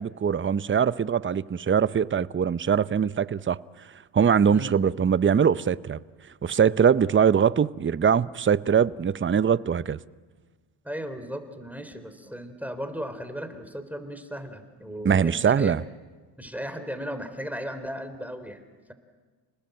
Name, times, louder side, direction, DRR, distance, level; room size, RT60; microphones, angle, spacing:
voice 1, 0.0-3.6 4.1-6.0 6.4-10.0 15.0-15.8, right 7 dB, 25° right, 0.7 m, -22 dB
voice 2, 10.8-15.8 16.4-18.6, equal, 5° right, 3.5 m, -36 dB
30.0 x 20.0 x 7.9 m
supercardioid pair, 70°, 50 cm